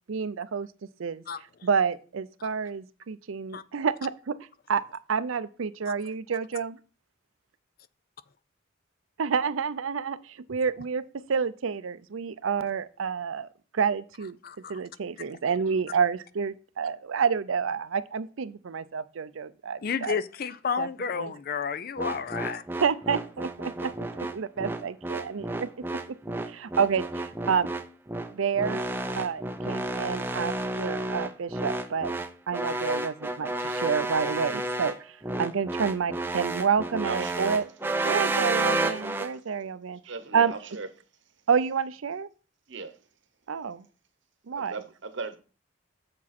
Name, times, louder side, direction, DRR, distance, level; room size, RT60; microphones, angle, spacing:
voice 1, 0.1-0.7 1.0-6.8 9.2-14.4 14.7-20.2 20.8-21.3 22.8-26.2 26.4-27.7 28.3-28.9 29.2-32.1 32.5-37.7 38.0-40.6 41.5-42.3 43.5-43.9 44.4-44.7, right 6 dB, 80° right, 0.5 m, -29 dB
voice 2, 14.4-14.7 19.8-22.6, left 6 dB, 45° left, 0.4 m, -31 dB
sound 1, 22.0-39.3, right 2 dB, 10° right, 0.5 m, -31 dB
voice 3, 37.0-37.6 38.0-38.4 40.1-40.9 42.7-43.0 44.5-45.4, right 4 dB, 60° right, 0.9 m, -37 dB
7.5 x 6.9 x 4.2 m
head